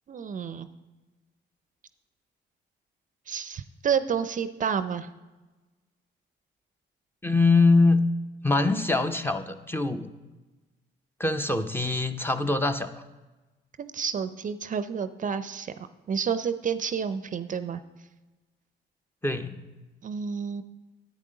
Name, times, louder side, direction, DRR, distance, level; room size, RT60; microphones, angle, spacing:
voice 1, 0.1-0.7 3.3-5.1 13.8-15.7 16.1-17.8 20.0-20.6, right 7 dB, 40° right, 12 dB, 0.4 m, -30 dB
voice 2, 7.2-8.1 8.4-10.1 11.2-12.9 19.2-19.6, left 3 dB, 10° left, 8 dB, 0.5 m, -23 dB
10.0 x 8.5 x 3.8 m, 1.2 s
cardioid pair, 90°, 20 cm